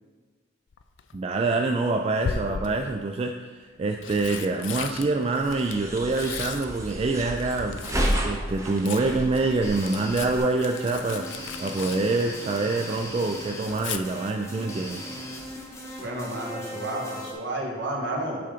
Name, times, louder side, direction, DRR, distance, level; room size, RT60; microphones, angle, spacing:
Tearing, 0.7-1.2 2.2-3.0 3.7-8.3 8.5-12.8 13.1-14.0 15.9-16.2 16.5-16.6, left 6 dB, 70° left, 0.4 m, -37 dB
voice 1, 1.1-11.3 11.6-15.0, right 3 dB, 30° right, 3 dB, 0.3 m, -26 dB
sound 1, 5.4-10.4, equal, 15° right, 0.7 m, -31 dB
sound 2, 9.6-17.3, left 1 dB, 15° left, 0.9 m, -39 dB
voice 2, 16.0-18.4, right 1 dB, 65° right, -2 dB, 1.6 m, -31 dB
8.4 x 3.7 x 5.0 m, 1.4 s
head